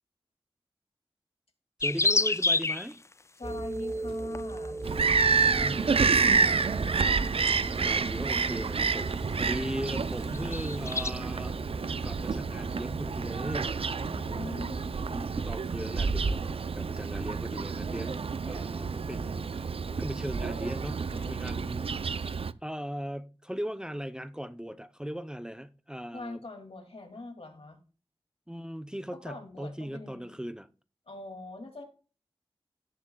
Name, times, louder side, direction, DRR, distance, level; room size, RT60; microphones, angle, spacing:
sound 1, 1.8-2.9 4.3-4.7 6.1-6.6 7.2-7.5 8.2-8.3 9.0-9.1 9.3-9.5 9.8-11.1, left 3 dB, 30° left, 0.3 m, -27 dB
voice 1, 1.8-3.0 5.4-6.4 7.8-11.6 12.0-13.8 15.1-26.4 28.5-30.7, equal, 10° right, 0.6 m, -38 dB
voice 2, 3.4-4.9 14.0-15.2 21.1-21.7 26.1-27.8 29.1-30.4 31.1-31.8, left 2 dB, 75° left, 2.4 m, -43 dB
sound 2, 3.4-15.2, right 2 dB, 25° right, 1.3 m, -40 dB
Bird vocalization bird call bird song, 4.8-22.5, right 5 dB, 70° right, 0.4 m, -29 dB
17.0 x 7.1 x 2.3 m
wide cardioid pair, 75°, 10 cm